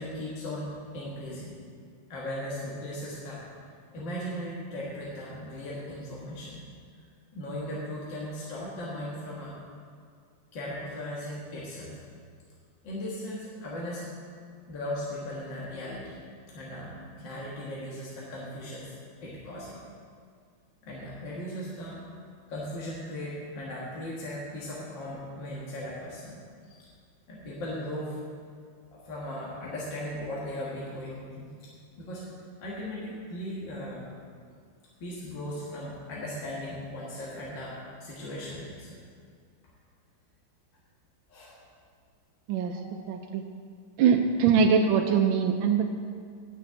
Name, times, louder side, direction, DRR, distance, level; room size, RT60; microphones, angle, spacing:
voice 1, 0.0-1.6 2.1-3.4 3.9-6.6 7.3-9.5 10.5-11.9 12.8-14.1 14.7-16.2 16.5-18.9 19.2-19.8 20.8-22.0 22.5-26.4 26.7-26.8 27.3-28.2 28.9-31.5 32.0-32.2 32.6-34.0 35.0-38.9 41.3-41.6, left 1 dB, 65° left, -6 dB, 2.2 m, -37 dB
voice 2, 42.5-42.8 43.1-43.4 44.0-46.0, right 6 dB, 85° right, 4 dB, 1.4 m, -23 dB
9.2 x 6.3 x 8.3 m, 2.1 s
omnidirectional pair, 2.2 m